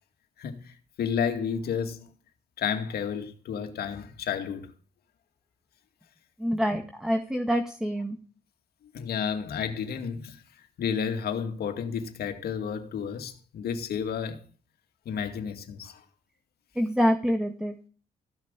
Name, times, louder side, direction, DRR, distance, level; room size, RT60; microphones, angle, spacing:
voice 1, 0.4-2.1 2.6-4.7 8.9-10.4 10.8-14.4 15.1-16.0, left 7 dB, 75° left, 2.3 m, -31 dB
voice 2, 6.4-8.2 16.8-17.7, equal, 5° right, 2.0 m, -26 dB
16.0 x 6.0 x 9.0 m
cardioid pair, 70°, 16 cm